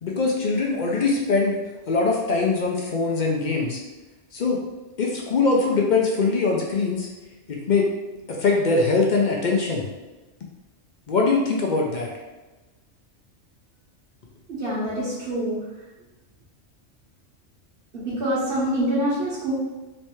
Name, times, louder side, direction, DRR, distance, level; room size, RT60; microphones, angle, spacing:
voice 1, 0.0-1.6 1.9-3.8 4.3-4.6 5.0-7.1 7.5-7.9 8.3-9.9 11.1-12.1, left 3 dB, 55° left, -1 dB, 0.5 m, -22 dB
voice 2, 14.5-15.6 17.9-19.5, right 1 dB, 50° right, -10 dB, 1.2 m, -25 dB
3.2 x 3.2 x 3.0 m, 1.1 s
omnidirectional pair, 1.3 m